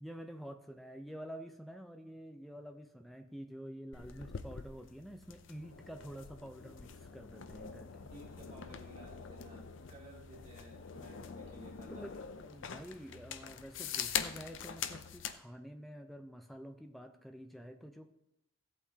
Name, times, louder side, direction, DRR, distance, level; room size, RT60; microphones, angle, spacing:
voice 1, 0.0-8.1 12.0-18.2, equal, ahead, 5 dB, 0.6 m, -48 dB
sound 1, 3.9-15.4, left 7 dB, 65° left, 0.6 m, -44 dB
voice 2, 8.1-12.1, right 1 dB, 35° right, -4 dB, 2.6 m, -54 dB
16.0 x 8.3 x 2.9 m, 0.82 s
head